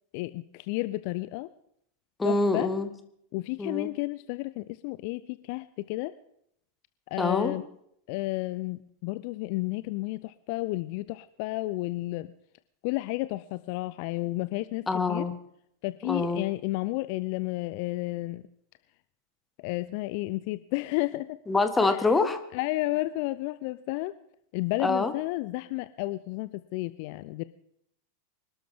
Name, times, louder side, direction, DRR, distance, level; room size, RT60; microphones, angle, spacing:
voice 1, 0.1-1.5 2.2-2.7 3.3-6.1 7.1-7.7 8.1-12.3 12.8-15.3 15.8-18.4 19.6-21.4 21.8-22.0 22.5-24.1 24.5-27.4, left 20 dB, 45° left, 14 dB, 0.5 m, -32 dB
voice 2, 2.2-2.9 3.6-3.9 7.2-7.5 14.9-15.4 16.1-16.4 21.5-22.4 24.8-25.1, left 3 dB, 10° left, 8 dB, 1.6 m, -25 dB
25.5 x 12.5 x 3.7 m, 0.72 s
figure-of-eight pair, 90°, 0 cm